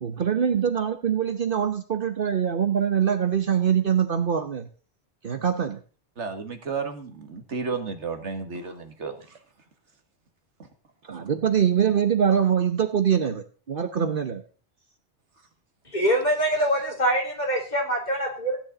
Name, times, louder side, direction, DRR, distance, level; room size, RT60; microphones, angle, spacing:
voice 1, 0.0-4.7 5.2-5.8 11.1-14.4, right 8 dB, 55° right, 9 dB, 1.0 m, -23 dB
voice 2, 6.2-9.1, right 5 dB, 85° right, 6 dB, 1.9 m, -32 dB
voice 3, 15.9-18.6, right 1 dB, 40° left, 0 dB, 3.2 m, -24 dB
16.0 x 9.8 x 3.9 m, 0.38 s
omnidirectional pair, 1.2 m